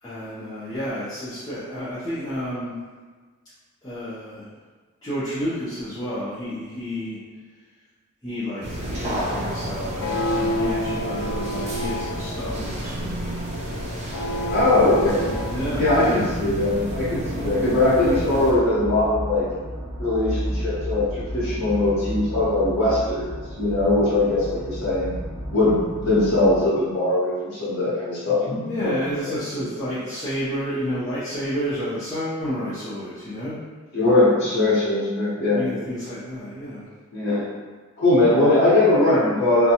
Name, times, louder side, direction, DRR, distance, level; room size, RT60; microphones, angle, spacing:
voice 1, 0.0-2.8 3.8-4.5 5.0-7.2 8.2-13.4 15.5-16.3 28.6-33.5 35.5-36.9, equal, 20° left, -14 dB, 0.6 m, -30 dB
sound 1, 8.6-18.5, right 1 dB, 30° right, 0.4 m, -31 dB
sound 2, 10.0-15.5, left 1 dB, 75° left, 0.4 m, -29 dB
voice 2, 14.5-15.3 15.7-19.4 20.0-23.3 23.6-25.1 25.5-28.9 29.2-29.3 33.9-35.8 37.1-37.4 38.0-39.7, left 2 dB, 55° left, -12 dB, 0.9 m, -20 dB
sound 3, 14.7-26.6, equal, 60° right, 0.7 m, -33 dB
2.5 x 2.2 x 2.8 m, 1.4 s
head